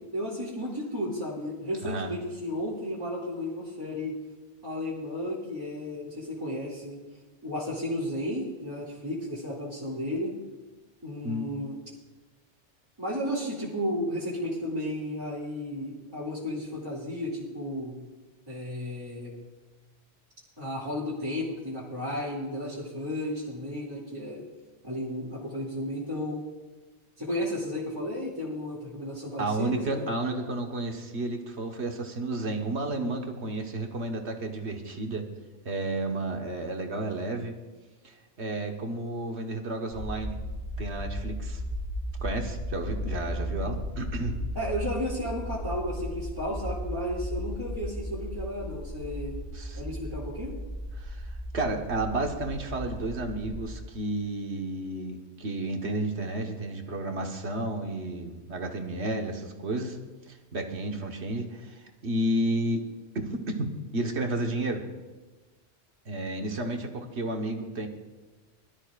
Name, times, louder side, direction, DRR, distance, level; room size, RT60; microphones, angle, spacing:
voice 1, 0.1-4.2 4.6-7.0 7.4-10.3 11.0-11.8 13.0-18.0 18.5-19.3 20.6-24.4 24.8-26.4 27.2-30.0 44.5-49.4 49.7-50.5, left 1 dB, 20° right, -9 dB, 2.4 m, -33 dB
voice 2, 29.4-35.3 35.6-37.5 38.0-40.4 40.8-41.6 42.2-44.4 49.5-49.8 51.0-51.3 51.5-60.0 60.3-62.8 63.1-64.8 66.0-67.9, right 2 dB, 65° right, 3 dB, 1.6 m, -32 dB
sound 1, 39.9-53.8, equal, 35° left, 3.5 m, -36 dB
21.5 x 12.5 x 2.5 m, 1.2 s
omnidirectional pair, 1.2 m